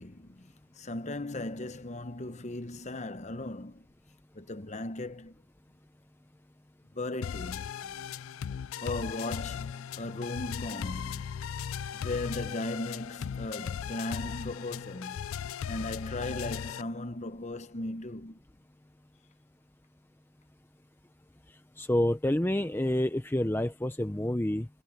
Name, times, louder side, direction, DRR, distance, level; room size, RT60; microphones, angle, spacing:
voice 1, 0.0-3.8 4.3-5.4 6.9-8.0 8.8-11.4 11.9-18.4, left 2 dB, 30° left, 0.9 m, -37 dB
sound 1, 7.2-16.8, left 8 dB, 65° left, 0.4 m, -37 dB
voice 2, 21.5-24.7, left 1 dB, 10° left, 0.6 m, -28 dB
head